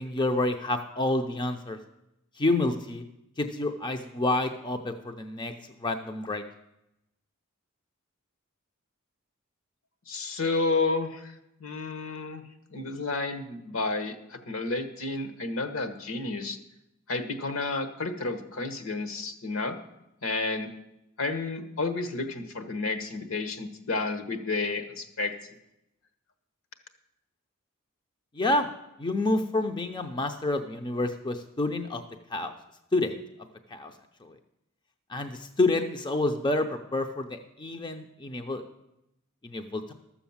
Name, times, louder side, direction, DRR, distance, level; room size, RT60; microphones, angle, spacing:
voice 1, 0.0-1.8 2.4-3.0 3.4-5.5 5.8-6.4 28.3-28.7 29.0-32.0 32.3-32.5 32.9-33.1 33.7-33.9 34.2-34.4 35.1-38.6 39.4-39.9, left 2 dB, 20° left, 6 dB, 0.6 m, -28 dB
voice 2, 10.1-11.3 11.6-12.4 12.7-16.6 17.1-19.8 20.2-20.7 21.2-25.3, left 3 dB, 70° left, 9 dB, 1.3 m, -31 dB
12.5 x 7.1 x 7.2 m, 0.86 s
head